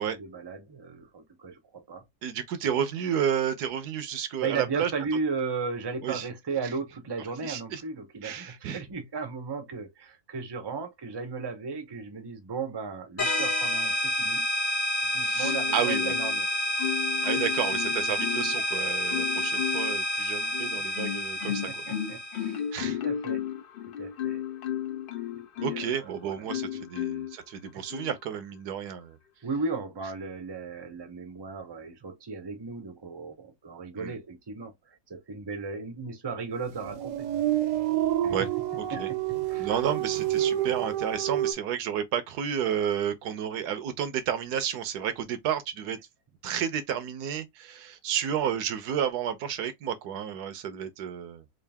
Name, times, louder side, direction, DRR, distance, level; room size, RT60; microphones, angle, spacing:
voice 1, 0.0-2.1 2.6-2.8 4.4-14.4 15.1-16.5 17.3-17.4 21.5-23.4 24.0-24.4 25.3-26.4 26.7-26.8 27.7-27.8 29.4-37.3 38.2-38.4 38.9-39.7, right 4 dB, 35° right, 0.4 m, -36 dB
voice 2, 2.2-4.9 6.0-6.3 7.4-7.8 8.2-8.8 15.2-16.1 17.2-21.8 22.7-23.0 25.6-29.2 34.0-34.2 38.3-38.5 38.7-39.1 39.6-46.0 46.4-51.4, right 9 dB, 80° right, 1.3 m, -31 dB
sound 1, 13.2-22.6, left 1 dB, 40° left, 0.8 m, -29 dB
Marimba xylophone, 15.4-16.4 16.8-18.6 19.1-20.0 20.5-26.0 26.5-27.4 27.9-28.2, left 10 dB, 65° left, 0.5 m, -33 dB
sound 2, 36.7-41.5, right 12 dB, 65° right, 0.9 m, -28 dB
3.7 x 2.5 x 3.3 m
omnidirectional pair, 1.7 m